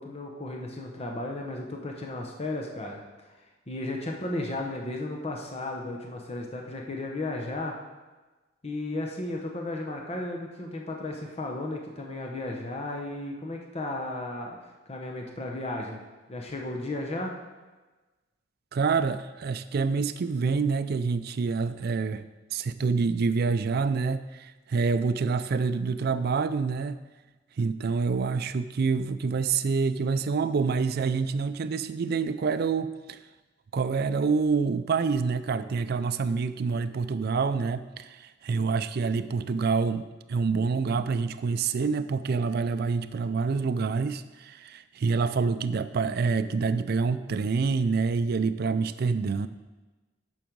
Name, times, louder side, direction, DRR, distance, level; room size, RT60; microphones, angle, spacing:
voice 1, 0.0-3.0 3.7-7.7 8.6-14.6 14.9-16.0 16.3-17.3, left 2 dB, 35° left, 1 dB, 0.9 m, -34 dB
voice 2, 18.7-22.2 22.5-27.0 27.6-33.2 33.7-49.5, right 5 dB, 55° right, 12 dB, 0.4 m, -27 dB
8.8 x 6.2 x 4.6 m, 1.2 s
head